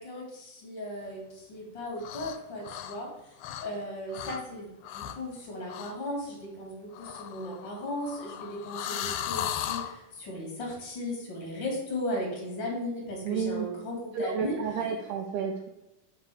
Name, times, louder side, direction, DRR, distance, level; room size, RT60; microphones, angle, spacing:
voice 1, 0.0-14.8, left 1 dB, 40° left, -1 dB, 2.1 m, -36 dB
sound 1, 2.0-2.4 2.6-3.8 4.1-4.4 4.8-5.3 5.7-6.0 6.9-9.9, left 11 dB, 90° left, 2.2 m, -36 dB
voice 2, 13.3-13.7 14.1-15.7, right 6 dB, 80° right, 3 dB, 1.8 m, -31 dB
7.5 x 3.7 x 4.7 m, 0.94 s
omnidirectional pair, 3.8 m